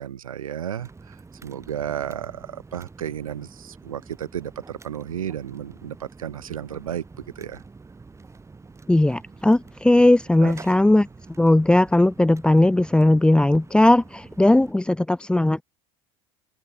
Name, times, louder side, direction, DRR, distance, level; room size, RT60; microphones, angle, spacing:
voice 1, 0.0-7.6 10.4-10.5, right 9 dB, 85° right, 0.9 m, -33 dB
sound 1, 0.8-14.7, right 4 dB, 15° right, 2.2 m, -47 dB
voice 2, 8.9-11.1 11.4-15.6, left 1 dB, 5° left, 0.6 m, -18 dB
open air
hypercardioid pair, 75°, 17 cm